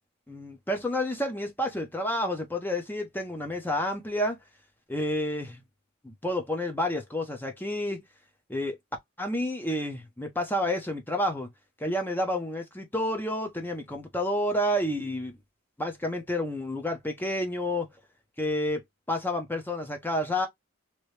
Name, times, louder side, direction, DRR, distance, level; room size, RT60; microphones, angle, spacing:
voice 1, 0.3-4.4 4.9-5.6 6.0-8.0 8.5-8.8 9.2-11.5 11.8-15.4 15.8-17.9 18.4-18.8 19.1-20.5, left 1 dB, 10° left, 0.6 m, -30 dB
3.0 x 2.7 x 3.1 m
head